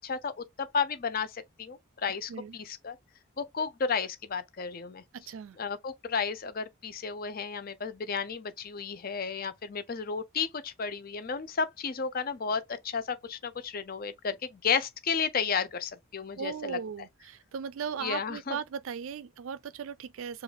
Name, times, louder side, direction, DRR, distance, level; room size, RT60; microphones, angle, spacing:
voice 1, 0.0-3.0 3.4-5.0 5.6-16.8 18.0-18.6, left 5 dB, 40° left, 0.5 m, -33 dB
voice 2, 5.1-5.6 16.4-20.4, right 7 dB, 65° right, 0.4 m, -37 dB
4.7 x 2.4 x 3.3 m
head